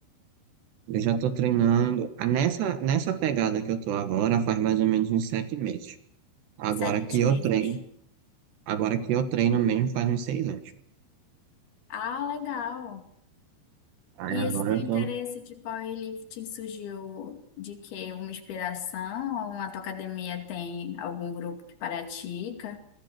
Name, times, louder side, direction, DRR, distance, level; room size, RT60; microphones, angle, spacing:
voice 1, 0.9-6.0 6.6-7.8 8.7-10.6 14.2-15.1, right 9 dB, 75° right, 10 dB, 3.5 m, -26 dB
voice 2, 6.8-7.5 11.9-13.1 14.3-22.8, left 8 dB, 65° left, 6 dB, 4.2 m, -35 dB
27.5 x 21.5 x 6.1 m, 0.69 s
omnidirectional pair, 5.1 m